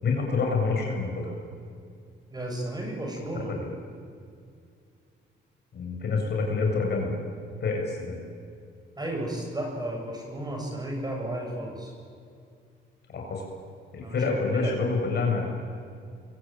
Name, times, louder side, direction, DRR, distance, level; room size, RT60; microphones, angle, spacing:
voice 1, 0.0-1.3 3.5-3.7 5.7-7.2 7.6-8.2 13.1-13.4 13.9-15.5, left 4 dB, 55° left, 1 dB, 7.6 m, -27 dB
voice 2, 2.3-3.5 9.0-11.9 14.0-14.2 14.5-14.7, right 1 dB, 20° right, 1 dB, 7.8 m, -33 dB
28.0 x 23.0 x 9.1 m, 2.3 s
cardioid pair, 90°, 20 cm